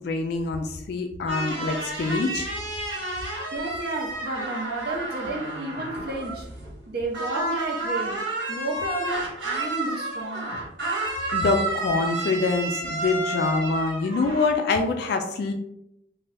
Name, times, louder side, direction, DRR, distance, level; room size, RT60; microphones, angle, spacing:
voice 1, 0.0-2.5 11.3-15.5, left 3 dB, 60° left, 0.3 m, -25 dB
sound 1, 1.3-6.9 7.1-14.5, right 2 dB, 85° right, 1.1 m, -31 dB
voice 2, 3.5-6.5 6.9-8.2 8.5-10.5, right 2 dB, 55° right, 0.6 m, -31 dB
2.7 x 2.2 x 3.3 m
head